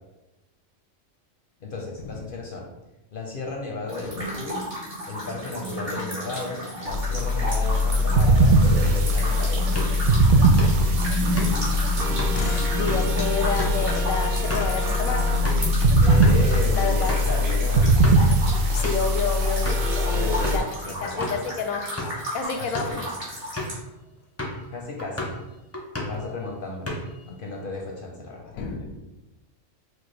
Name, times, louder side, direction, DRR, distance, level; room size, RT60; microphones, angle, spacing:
voice 1, 1.6-2.7 3.1-4.7 5.1-9.7 16.0-17.9 20.0-20.6 20.9-21.3 22.6-23.1 24.7-25.4 26.0-26.9 27.3-28.5, left 3 dB, 55° left, -1 dB, 0.6 m, -34 dB
sound 1, 3.9-23.8, equal, 45° right, 1.9 m, -33 dB
sound 2, 6.9-20.6, equal, 70° right, 0.4 m, -21 dB
sound 3, 9.6-15.7 16.1-16.4 16.8-16.9 17.1-17.3 17.8-18.3 18.8-19.1 19.6-19.9 20.4-20.7 21.2-21.4 21.8-22.3 22.6-23.0 23.6-23.8 24.4-24.7 25.0-25.4 25.7-26.3 26.6-27.3, left 1 dB, 20° left, 0.3 m, -33 dB
voice 2, 12.3-15.4 16.8-17.2 18.7-21.8 22.3-23.0 28.5-29.0, left 5 dB, 90° left, 4 dB, 1.1 m, -30 dB
6.1 x 2.3 x 3.2 m, 1.0 s
omnidirectional pair, 1.4 m